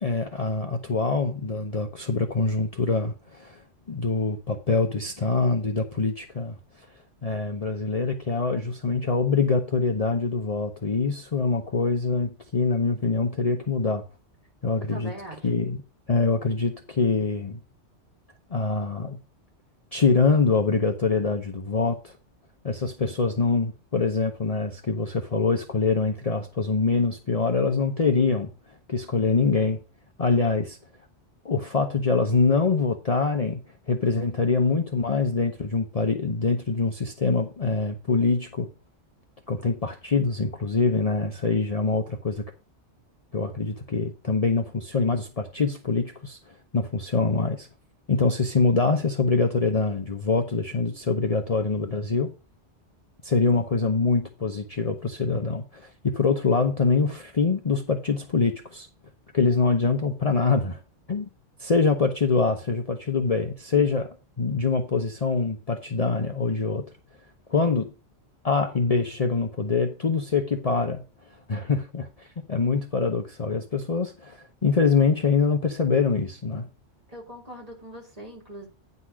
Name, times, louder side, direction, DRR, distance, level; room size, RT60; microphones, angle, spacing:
voice 1, 0.0-3.6 3.9-6.6 7.2-14.0 14.6-15.1 15.4-15.8 16.1-17.6 18.5-19.2 19.9-22.1 22.6-28.5 28.9-29.8 30.2-30.8 31.4-33.6 33.9-38.7 39.5-42.4 43.3-46.4 46.7-47.7 48.1-52.3 53.2-58.9 59.3-60.8 61.1-61.3 61.6-66.9 67.5-67.9 68.4-71.0 71.5-76.7, left 4 dB, 35° left, 0.8 m, -24 dB
voice 2, 14.7-15.4 77.1-78.7, equal, 35° right, 3.4 m, -41 dB
9.7 x 4.1 x 6.0 m
omnidirectional pair, 1.2 m